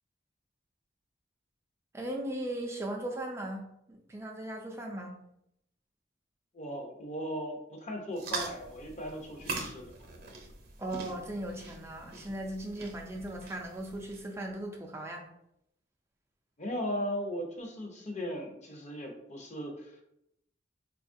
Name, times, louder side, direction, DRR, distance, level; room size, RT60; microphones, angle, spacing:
voice 1, 1.9-5.2 10.8-15.2, right 1 dB, 15° right, 0 dB, 0.3 m, -38 dB
voice 2, 6.5-9.9 16.6-20.0, equal, 40° left, 1 dB, 0.7 m, -37 dB
sound 1, 8.1-14.5, right 3 dB, 55° right, 0.7 m, -42 dB
4.2 x 2.4 x 2.5 m, 0.78 s
head